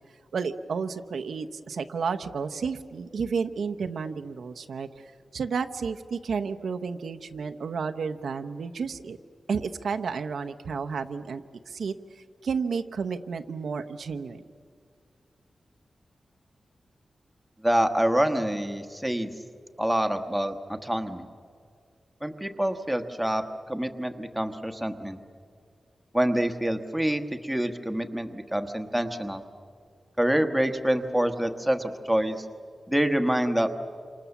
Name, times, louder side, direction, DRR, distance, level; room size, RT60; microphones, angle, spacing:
voice 1, 0.3-9.2 9.5-14.4, right 5 dB, 80° right, 7 dB, 0.9 m, -32 dB
voice 2, 17.6-19.3 19.8-21.3 22.2-25.2 26.1-29.4 30.2-32.5 32.9-33.7, right 1 dB, 5° right, 6 dB, 1.2 m, -26 dB
28.0 x 26.5 x 7.1 m, 2.2 s
wide cardioid pair, 175°, 0 cm